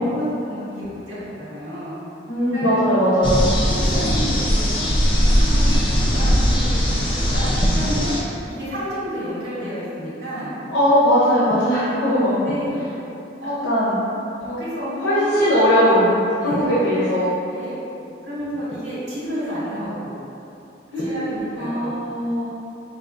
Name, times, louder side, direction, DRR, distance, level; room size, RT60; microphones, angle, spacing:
voice 1, 0.0-2.0 2.5-2.7 3.3-7.4 7.7-8.1 8.5-10.5 12.4-12.8 13.4-13.6 14.4-15.4 16.4-16.8 17.5-17.8 18.2-20.2 21.0-22.0, equal, 65° right, -11 dB, 1.5 m, -30 dB
voice 2, 2.3-3.5 10.7-12.4 13.6-14.0 15.0-17.3 20.9-22.5, equal, 80° left, -9 dB, 0.7 m, -19 dB
sound 1, 3.2-8.2, equal, 25° left, 0.4 m, -19 dB
4.7 x 2.4 x 2.5 m, 2.9 s
head